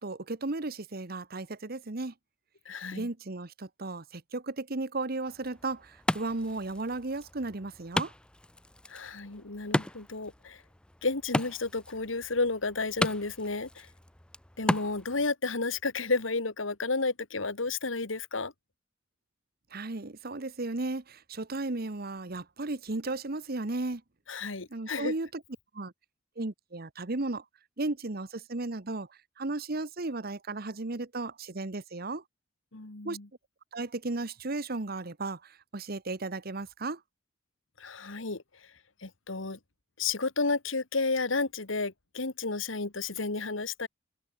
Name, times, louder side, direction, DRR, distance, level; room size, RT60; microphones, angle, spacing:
voice 1, 0.0-2.1 2.9-8.1 19.7-24.0 24.7-25.4 25.7-25.9 26.4-27.4 27.8-29.1 29.4-32.2 33.0-33.2 33.7-37.0, right 2 dB, 50° right, 1.3 m, -35 dB
voice 2, 2.7-3.1 8.9-10.6 11.0-13.9 14.6-18.5 24.3-25.1 32.7-33.3 37.8-38.4 39.0-39.6 40.0-43.9, left 3 dB, 85° left, 1.9 m, -32 dB
Wood, 5.3-15.3, left 1 dB, 5° left, 0.4 m, -36 dB
head